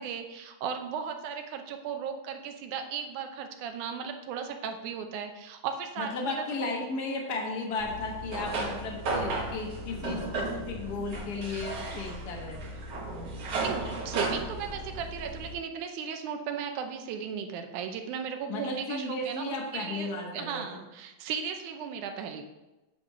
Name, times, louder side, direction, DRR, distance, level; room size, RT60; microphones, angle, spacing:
voice 1, 0.0-6.7 13.6-22.4, right 7 dB, 75° right, 6 dB, 2.1 m, -36 dB
voice 2, 6.0-12.6 18.5-20.6, left 3 dB, 80° left, 0 dB, 0.9 m, -34 dB
sound 1, 7.8-15.5, right 2 dB, 55° right, 2.1 m, -34 dB
8.8 x 4.1 x 6.2 m, 1.0 s
omnidirectional pair, 3.9 m